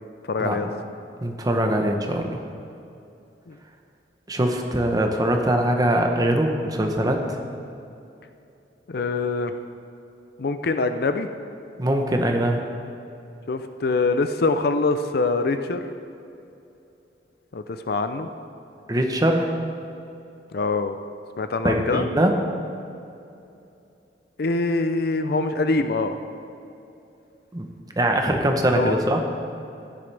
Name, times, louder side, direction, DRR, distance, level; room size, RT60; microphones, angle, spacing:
voice 1, 0.2-0.7 3.5-3.6 8.9-9.5 10.4-11.3 13.5-15.9 17.5-18.3 20.5-21.0 21.4-22.1 24.4-26.2 28.7-29.0, left 3 dB, 60° left, 8 dB, 0.5 m, -24 dB
voice 2, 1.2-2.4 4.3-7.2 11.8-12.6 18.9-19.5 21.6-22.3 27.5-27.7 28.0-29.2, right 1 dB, 20° right, 3 dB, 0.9 m, -22 dB
14.5 x 10.0 x 3.4 m, 2.7 s
head